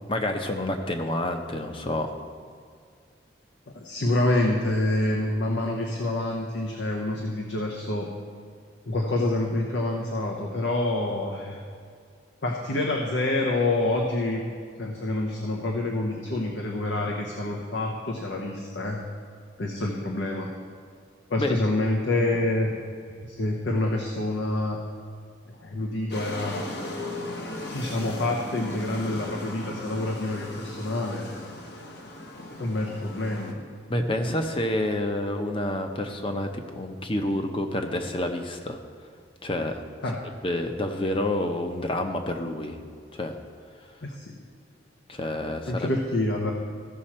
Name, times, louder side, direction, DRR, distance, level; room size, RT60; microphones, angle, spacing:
voice 1, 0.1-2.1 21.4-21.5 33.9-38.8 39.4-39.8 40.4-42.8 43.1-43.3 45.1-45.9, left 1 dB, 30° left, 5 dB, 0.8 m, -28 dB
voice 2, 3.7-8.1 8.9-11.6 12.4-14.4 14.8-19.0 19.6-20.5 21.3-22.8 23.2-24.8 25.5-26.7 27.7-31.3 32.6-33.6 40.0-40.2 44.0-44.3 45.7-46.5, left 2 dB, 80° left, 0 dB, 1.0 m, -27 dB
sound 1, 26.1-33.5, left 1 dB, 60° left, 1.2 m, -37 dB
15.0 x 6.2 x 4.3 m, 2.2 s
head